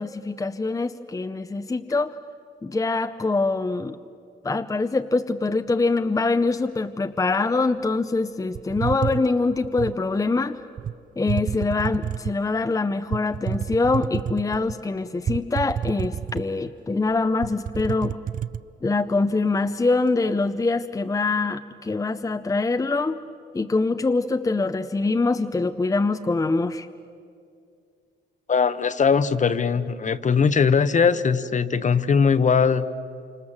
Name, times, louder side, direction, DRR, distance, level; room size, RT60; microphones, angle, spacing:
voice 1, 0.0-2.1 2.6-4.0 4.4-10.6 11.2-18.2 18.8-23.2 23.5-26.9, left 3 dB, 15° left, 8 dB, 0.7 m, -24 dB
sound 1, 8.5-10.0 10.8-10.9 11.3-12.4 13.1-14.8 15.3-16.7 17.0-17.1 17.4-18.6, right 8 dB, 45° right, 0.5 m, -29 dB
voice 2, 28.5-32.9, left 6 dB, 40° left, 13 dB, 1.0 m, -20 dB
28.0 x 26.5 x 7.4 m, 2.4 s
cardioid pair, 90°, 20 cm